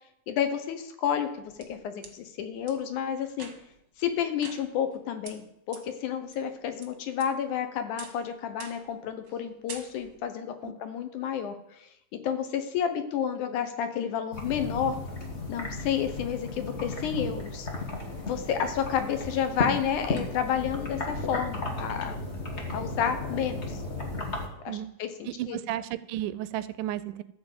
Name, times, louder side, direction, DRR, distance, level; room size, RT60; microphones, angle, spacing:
voice 1, 0.3-3.5 4.0-11.9 12.2-15.0 15.5-17.7 18.2-22.2 22.7-23.8 24.6-25.6, left 8 dB, 75° left, 8 dB, 2.3 m, -30 dB
sound 1, 1.2-2.1 2.7-2.8 3.3-3.8 4.4-5.0 5.2-5.3 5.7-5.8 6.3-6.9 7.2-7.6 8.0-8.2 8.6-8.9 9.2-9.4 9.7-10.2, right 5 dB, 45° right, 1.2 m, -45 dB
sound 2, 14.3-24.5, left 2 dB, 40° left, 1.0 m, -35 dB
voice 2, 25.2-27.2, right 13 dB, 85° right, 15 dB, 2.1 m, -33 dB
13.0 x 4.6 x 8.0 m, 0.80 s
omnidirectional pair, 3.7 m